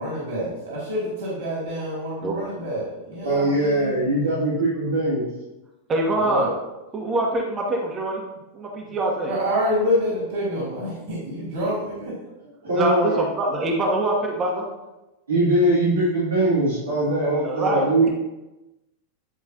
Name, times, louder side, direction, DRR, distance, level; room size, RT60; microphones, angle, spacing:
voice 1, 0.0-3.9 6.2-6.5 9.3-12.1, equal, 60° right, -6 dB, 2.6 m, -27 dB
voice 2, 3.2-5.3 12.6-13.2 15.3-18.1, right 1 dB, 75° right, -11 dB, 2.5 m, -21 dB
voice 3, 5.9-6.5 6.9-8.2 8.5-9.3 12.7-14.6 17.4-17.9, right 1 dB, 25° right, 0 dB, 1.2 m, -24 dB
10.0 x 4.7 x 2.8 m, 1.0 s
figure-of-eight pair, 90°, 0 cm